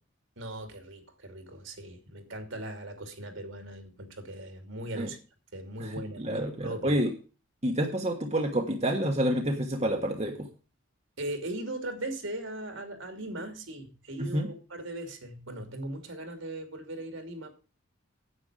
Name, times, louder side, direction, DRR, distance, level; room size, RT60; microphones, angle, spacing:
voice 1, 0.4-5.2 5.5-7.0 11.2-17.5, right 1 dB, 65° right, 5 dB, 2.7 m, -39 dB
voice 2, 5.8-7.1 7.6-10.5 14.2-14.5, right 1 dB, 30° right, 2 dB, 1.3 m, -28 dB
9.8 x 8.8 x 5.0 m, 0.34 s
head